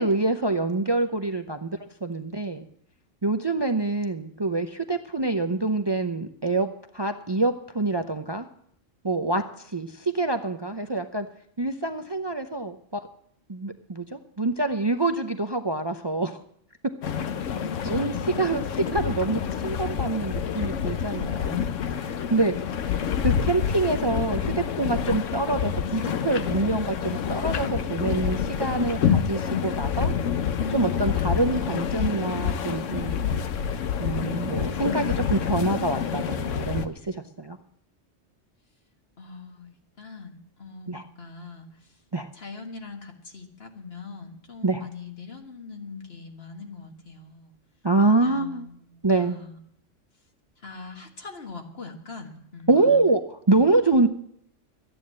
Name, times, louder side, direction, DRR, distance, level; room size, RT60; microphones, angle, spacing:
voice 1, 0.0-2.6 3.2-6.7 6.9-8.5 9.0-11.3 11.6-13.0 13.5-16.4 17.4-17.5 17.8-21.7 22.1-22.5 23.2-30.1 30.7-33.3 34.0-37.6 40.9-41.0 42.1-42.3 44.6-44.8 47.8-48.6 49.0-49.4 52.7-53.2 53.5-54.1, right 2 dB, 30° right, 7 dB, 0.5 m, -26 dB
sound 1, 17.0-36.9, left 8 dB, 80° left, 1.2 m, -28 dB
voice 2, 17.6-18.5 39.2-42.0 42.3-47.6 48.2-49.6 50.6-53.0, left 4 dB, 55° left, 3 dB, 1.8 m, -42 dB
13.5 x 9.8 x 7.5 m, 0.68 s
omnidirectional pair, 1.3 m